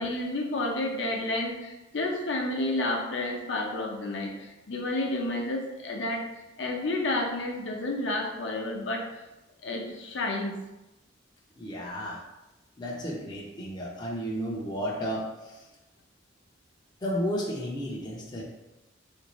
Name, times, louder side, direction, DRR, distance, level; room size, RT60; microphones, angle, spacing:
voice 1, 0.0-6.3 6.6-9.0 9.6-10.6, left 2 dB, 70° left, 1 dB, 0.6 m, -30 dB
voice 2, 11.6-12.2 12.8-15.6 17.0-18.4, equal, 25° left, -3 dB, 0.5 m, -33 dB
3.5 x 2.6 x 3.0 m, 1.0 s
head